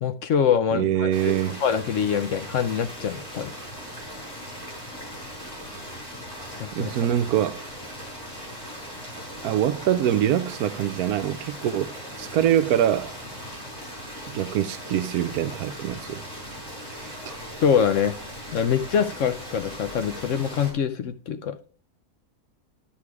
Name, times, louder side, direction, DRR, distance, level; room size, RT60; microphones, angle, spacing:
voice 1, 0.0-1.3 1.6-3.5 6.6-6.9 8.0-8.1 17.6-18.2 18.5-21.6, left 7 dB, 60° left, 0.9 m, -24 dB
voice 2, 0.7-1.6 6.7-7.7 9.4-13.2 14.3-16.2 17.0-17.1, right 10 dB, 75° right, 1.1 m, -24 dB
sound 1, 1.1-20.7, equal, 15° left, 4.2 m, -39 dB
12.0 x 6.0 x 4.8 m
omnidirectional pair, 1.6 m